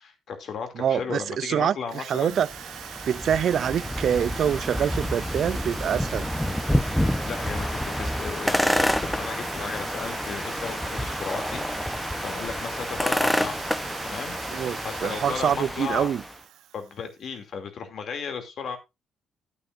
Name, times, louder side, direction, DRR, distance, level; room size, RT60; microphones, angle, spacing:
voice 1, 0.0-2.4 7.0-11.6 12.2-13.6 14.0-16.1 16.7-18.8, left 6 dB, 60° left, 2.6 m, -35 dB
voice 2, 0.8-2.5 3.1-6.3 14.5-16.2, right 9 dB, 65° right, 0.4 m, -25 dB
Drill, 1.9-17.1, right 11 dB, 85° right, 0.8 m, -41 dB
sound 1, 2.3-16.4, equal, 5° left, 0.8 m, -28 dB
11.5 x 8.9 x 2.5 m
cardioid pair, 90°, 0 cm